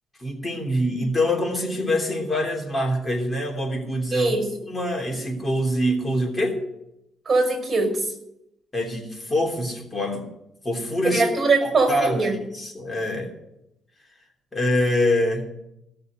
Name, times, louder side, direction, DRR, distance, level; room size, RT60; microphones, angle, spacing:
voice 1, 0.2-4.3 4.7-6.6 8.7-10.2 10.6-11.2 11.6-12.2 12.5-13.3 14.5-15.5, left 1 dB, 20° left, 1 dB, 3.3 m, -25 dB
voice 2, 4.1-4.5 7.3-8.1 11.0-12.4, right 3 dB, 35° right, 5 dB, 5.4 m, -22 dB
17.0 x 6.8 x 7.7 m, 0.84 s
cardioid pair, 90°, 0 cm